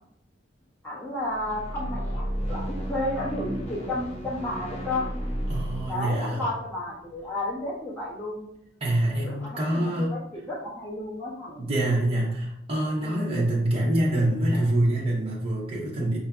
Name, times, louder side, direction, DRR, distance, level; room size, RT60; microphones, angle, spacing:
voice 1, 0.8-5.1 5.9-8.5 9.2-11.6 13.0-13.5, left 1 dB, 10° left, -9 dB, 1.2 m, -32 dB
sound 1, 1.2-7.6, equal, 30° left, 0.6 m, -33 dB
voice 2, 5.5-6.4 8.8-10.2 11.6-16.2, right 1 dB, 30° right, -6 dB, 0.8 m, -25 dB
5.6 x 2.6 x 2.3 m, 0.78 s
head